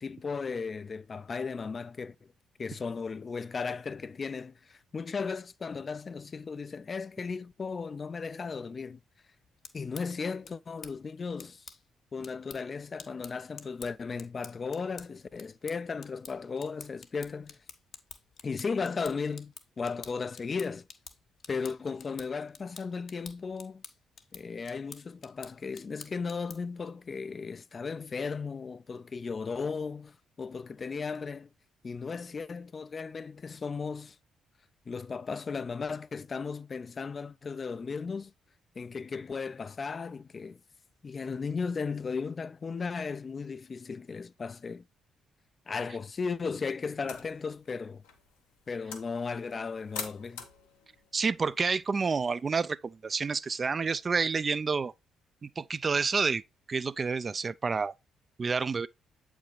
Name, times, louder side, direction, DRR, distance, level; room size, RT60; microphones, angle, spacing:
voice 1, 0.0-2.2 2.6-9.0 9.7-11.7 12.1-17.6 18.4-20.9 21.5-23.8 24.3-31.5 31.8-34.2 34.9-38.3 38.8-40.6 41.0-44.8 45.7-48.0 48.7-50.4, left 5 dB, 40° left, 0.3 m, -36 dB
sound 1, 9.4-26.8, left 6 dB, 60° left, 0.7 m, -51 dB
sound 2, 47.0-52.5, left 6 dB, 90° left, 0.9 m, -47 dB
voice 2, 51.1-54.9 55.4-56.4 56.7-57.9 58.4-58.9, right 5 dB, 40° right, 0.3 m, -29 dB
7.4 x 5.2 x 3.1 m
hypercardioid pair, 50°, 0 cm